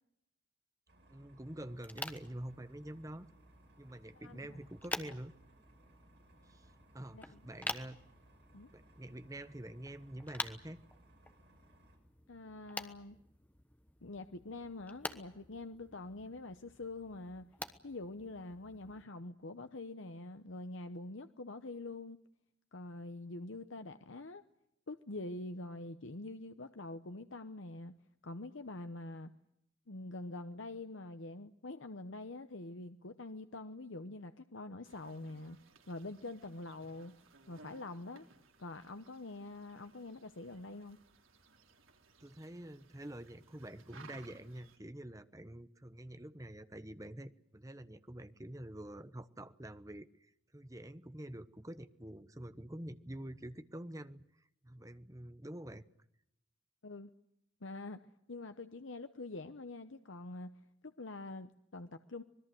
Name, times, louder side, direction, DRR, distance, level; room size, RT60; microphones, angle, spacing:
sound 1, 0.9-12.0, right 1 dB, 55° right, 6.7 m, -64 dB
voice 1, 1.1-3.3 3.8-5.3 6.5-6.7 6.9-8.0 8.7-10.8 42.2-50.3 50.5-54.2 54.6-55.8, right 1 dB, 15° right, 12 dB, 1.0 m, -47 dB
sound 2, 1.8-19.0, left 2 dB, 10° left, 1.2 m, -48 dB
voice 2, 4.2-4.6 7.1-7.4 8.5-8.7 12.3-13.2 14.0-17.5 17.8-22.2 22.7-24.4 24.9-27.9 28.2-29.3 29.9-35.6 35.9-37.2 37.5-38.3 38.6-41.0 56.8-57.1 57.6-62.2, left 2 dB, 70° left, 9 dB, 1.0 m, -45 dB
sound 3, 34.8-44.8, right 3 dB, 80° right, 3.7 m, -61 dB
25.5 x 21.0 x 7.8 m, 0.80 s
head